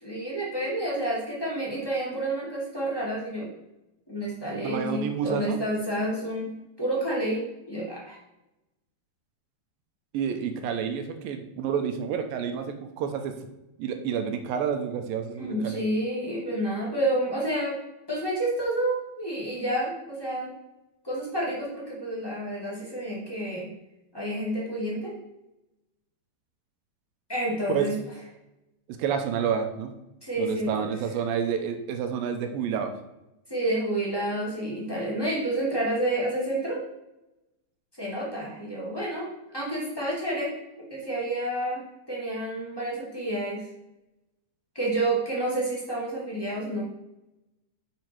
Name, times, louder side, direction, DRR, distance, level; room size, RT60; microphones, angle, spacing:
voice 1, 0.0-3.5 4.1-6.5 6.8-8.2 15.4-17.8 18.1-20.5 21.0-23.7 24.1-25.1 27.3-27.9 30.2-30.9 33.5-36.8 38.0-40.5 40.9-41.8 42.1-43.7 44.7-46.8, right 1 dB, 10° left, -5 dB, 1.4 m, -29 dB
voice 2, 4.6-5.6 10.1-13.3 13.8-15.8 27.7-27.9 28.9-29.9 30.4-32.9, right 7 dB, 75° right, 6 dB, 2.4 m, -29 dB
8.4 x 5.3 x 4.5 m, 0.92 s
omnidirectional pair, 4.4 m